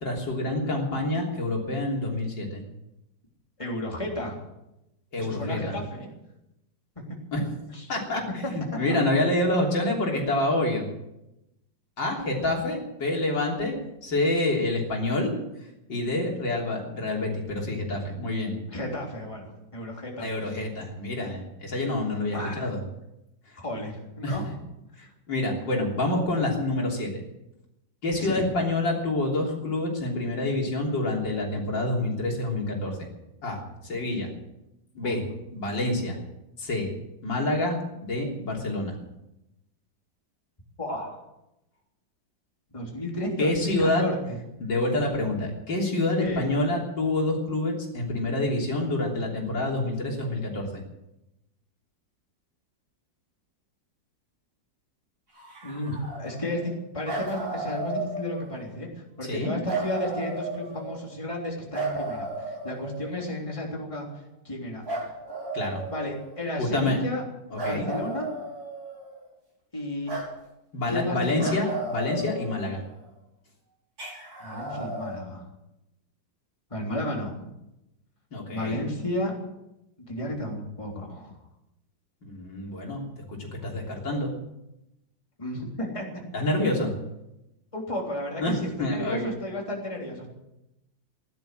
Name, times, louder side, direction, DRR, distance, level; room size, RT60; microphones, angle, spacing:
voice 1, 0.0-2.6 5.1-5.7 7.3-7.4 7.9-8.2 8.5-10.9 12.0-13.7 14.0-15.3 15.9-18.6 20.2-22.8 24.2-24.4 25.0-27.1 28.0-33.0 33.4-33.6 33.8-34.3 35.0-35.2 35.5-36.2 36.6-36.9 37.2-38.9 43.4-44.0 44.6-50.8 59.2-59.5 65.5-65.8 66.6-67.0 67.5-67.9 70.7-72.8 78.3-78.8 82.2-83.0 83.3-84.3 86.3-86.9 88.4-89.3, left 2 dB, 80° left, -1 dB, 4.0 m, -27 dB
voice 2, 3.6-4.4 5.2-6.1 7.7-7.9 8.4-8.5 18.7-20.6 22.3-22.6 23.6-24.5 28.2-28.4 35.0-35.4 40.8-41.2 42.7-44.4 46.2-46.5 55.6-64.1 64.5-65.1 65.9-67.2 67.6-68.3 69.7-70.1 70.9-71.5 74.4-75.5 76.7-77.4 78.5-79.3 80.1-81.3 83.6-83.7 85.4-86.0 87.7-90.3, left 1 dB, 15° left, -1 dB, 3.5 m, -33 dB
sound 1, 55.3-56.7 57.0-58.7 59.6-61.1 61.7-63.3 64.9-66.5 67.6-69.2 70.1-70.3 71.4-73.0 74.0-75.2, right 2 dB, 55° right, 6.0 m, -34 dB
16.0 x 11.5 x 7.6 m, 0.90 s
omnidirectional pair, 2.0 m